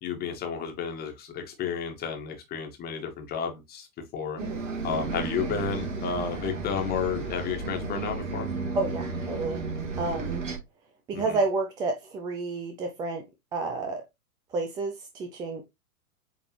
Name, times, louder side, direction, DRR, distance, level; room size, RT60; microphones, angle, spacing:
voice 1, 0.0-4.4 4.8-8.5 11.1-11.4, left 6 dB, 20° left, 1.8 m, -32 dB
Bus, 4.4-10.6, right 4 dB, 55° right, 2.3 m, -33 dB
voice 2, 8.7-9.6 10.0-10.4 11.1-13.2 13.5-14.0 14.5-15.6, right 3 dB, 10° right, 0.5 m, -30 dB
8.2 x 3.8 x 3.2 m
figure-of-eight pair, 105°, 44 cm